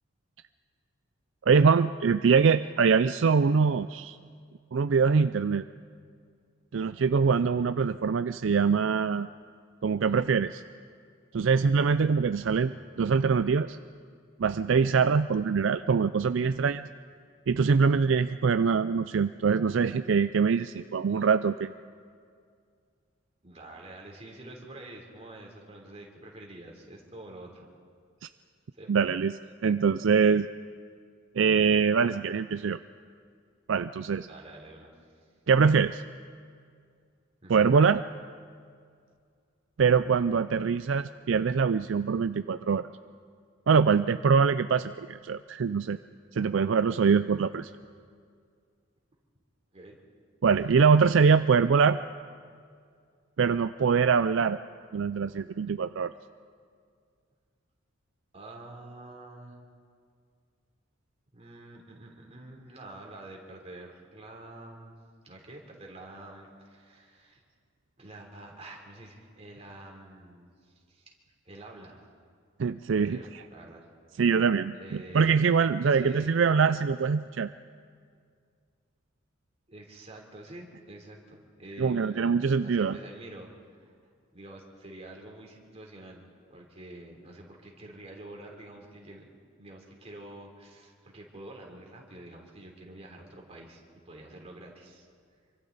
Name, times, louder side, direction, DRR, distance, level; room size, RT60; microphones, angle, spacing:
voice 1, 1.5-4.2 4.7-5.6 6.7-9.3 9.8-10.6 11.3-13.8 14.4-16.9 17.5-21.7 28.9-29.3 29.6-30.5 31.4-32.8 33.7-34.3 35.5-36.0 37.5-38.0 39.8-42.9 43.7-46.0 46.3-47.7 50.4-52.0 53.4-54.6 54.9-56.1 72.6-73.2 74.2-77.5 81.8-83.0, right 5 dB, 65° right, 12 dB, 0.4 m, -23 dB
voice 2, 7.2-7.7 12.4-12.9 23.4-27.7 28.7-28.9 34.3-35.2 37.4-37.7 49.7-50.0 58.3-59.6 61.3-64.9 65.2-67.4 68.0-71.1 71.5-72.1 72.9-73.9 74.8-75.4 75.9-76.4 79.7-83.5 83.8-83.9 84.3-86.2 86.5-89.3 89.6-95.1, right 1 dB, 30° right, 0 dB, 3.5 m, -47 dB
27.0 x 24.5 x 4.1 m, 2.2 s
head